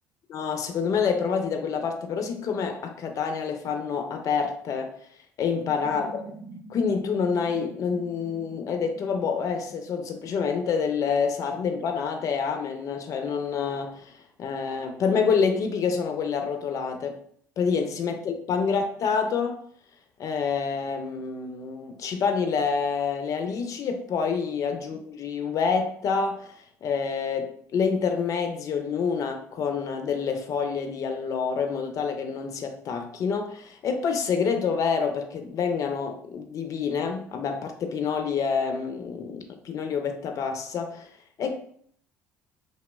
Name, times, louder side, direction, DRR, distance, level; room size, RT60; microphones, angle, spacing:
voice 1, 0.3-5.0 5.4-6.3 6.7-14.1 14.4-17.2 17.6-19.6 20.2-26.5 26.8-41.1 41.4-41.6, left 6 dB, 50° left, 0.4 m, -27 dB
sound 1, 5.5-11.6, right 3 dB, 25° right, 0.5 m, -47 dB
2.8 x 2.0 x 2.2 m
hypercardioid pair, 60°, 7 cm